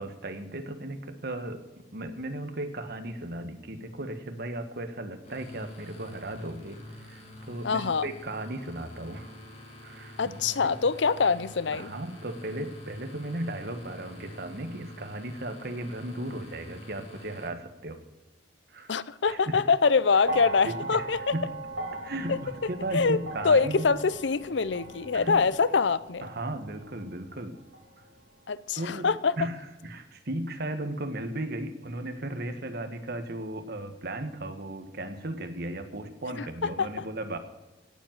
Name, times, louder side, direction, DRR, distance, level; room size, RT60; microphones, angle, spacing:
voice 1, 0.0-1.6 1.9-6.8 7.1-9.3 9.8-10.2 10.6-10.7 11.7-18.0 18.7-19.0 19.3-19.6 20.6-21.0 21.3-21.5 22.0-23.9 25.1-25.4 26.2-27.6 28.8-37.4, right 1 dB, 55° right, 8 dB, 1.6 m, -36 dB
sound 1, 5.2-17.5, left 1 dB, 35° left, 2.7 m, -46 dB
voice 2, 7.6-8.1 10.2-11.9 18.9-21.3 22.3-22.4 22.9-23.2 23.4-26.3 28.5-29.3 36.6-36.7, left 5 dB, 70° left, 17 dB, 0.6 m, -24 dB
sound 2, 20.2-28.6 29.6-29.7, right 2 dB, 75° right, 2.0 m, -39 dB
17.0 x 7.6 x 7.6 m, 1.1 s
head